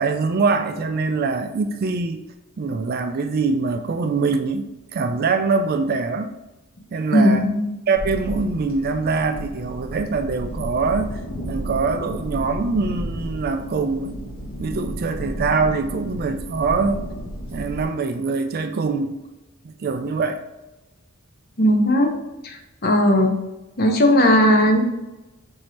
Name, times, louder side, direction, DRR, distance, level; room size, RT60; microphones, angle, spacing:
voice 1, 0.0-2.2 2.6-6.3 6.9-7.5 7.9-11.2 11.5-14.1 14.6-17.0 17.5-19.1 19.6-20.4, right 4 dB, 45° right, 8 dB, 0.3 m, -23 dB
voice 2, 7.1-7.6 21.6-22.1 22.4-22.6 22.8-23.3 23.8-24.8, equal, 45° left, 3 dB, 0.7 m, -16 dB
sound 1, 8.0-17.9, equal, 65° left, 1.5 m, -32 dB
5.7 x 2.7 x 3.1 m, 1.0 s
head